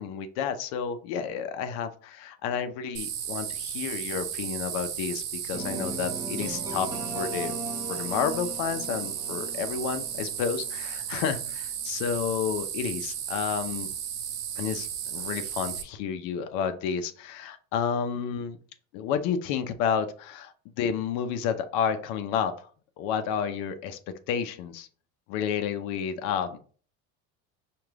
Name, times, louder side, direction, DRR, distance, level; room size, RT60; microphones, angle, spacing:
voice 1, 0.0-6.9 7.1-7.5 7.9-13.9 14.6-18.6 18.9-22.7 23.0-24.0 24.3-24.9 25.3-26.6, left 7 dB, 80° left, 9 dB, 0.7 m, -30 dB
sound 1, 2.9-15.8, right 9 dB, 80° right, 0.8 m, -34 dB
sound 2, 5.5-11.4, right 1 dB, 10° right, 1.0 m, -38 dB
4.9 x 2.5 x 3.5 m, 0.42 s
supercardioid pair, 120°, 35 cm